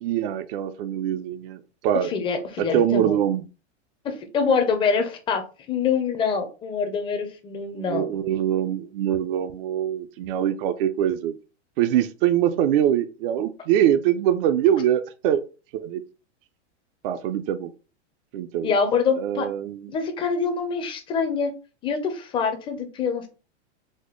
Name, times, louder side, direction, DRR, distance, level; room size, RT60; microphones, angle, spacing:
voice 1, 0.0-2.1 2.7-3.4 7.7-11.3 11.8-15.4 15.7-16.0 17.0-17.7 18.3-18.7 19.2-19.9, right 10 dB, 55° right, 11 dB, 0.5 m, -23 dB
voice 2, 2.0-3.2 4.0-5.4 5.7-8.1 18.6-19.5 19.9-21.5 21.8-23.3, left 5 dB, 15° left, 5 dB, 0.4 m, -25 dB
4.2 x 2.1 x 3.0 m, 0.33 s
supercardioid pair, 140°, 35 cm